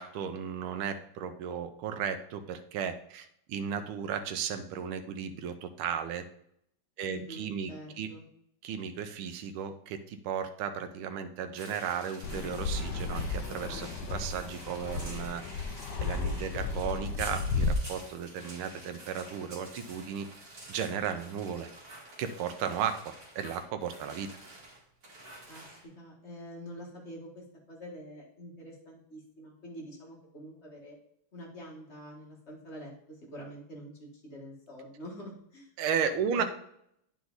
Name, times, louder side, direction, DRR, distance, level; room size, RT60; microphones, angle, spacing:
voice 1, 0.0-6.2 7.0-7.7 8.0-8.1 8.6-15.4 16.0-20.3 20.7-21.7 22.2-24.3 35.8-36.4, right 7 dB, 85° right, 7 dB, 1.5 m, -35 dB
voice 2, 7.1-8.3 25.5-31.0 31.3-35.7 36.3-36.4, equal, 30° left, -2 dB, 2.0 m, -46 dB
sound 1, 11.5-25.8, right 1 dB, 40° right, 2.5 m, -49 dB
Fixed-wing aircraft airplane, 12.2-17.7, left 4 dB, 70° left, 1.1 m, -34 dB
9.6 x 4.7 x 4.0 m, 0.71 s
omnidirectional pair, 2.4 m